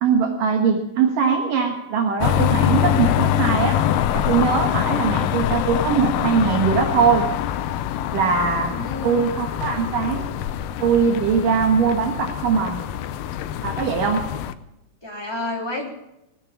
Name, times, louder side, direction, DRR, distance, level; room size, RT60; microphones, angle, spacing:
voice 1, 0.0-3.8 4.1-7.2 8.1-8.7 9.0-10.3 10.8-12.8 13.6-14.2, right 6 dB, 70° right, 4 dB, 2.9 m, -21 dB
sound 1, 2.2-14.5, left 11 dB, 85° left, 2.5 m, -24 dB
voice 2, 8.7-9.3 15.0-15.9, left 2 dB, 10° left, -1 dB, 2.6 m, -31 dB
18.5 x 9.5 x 7.1 m, 0.89 s
omnidirectional pair, 4.1 m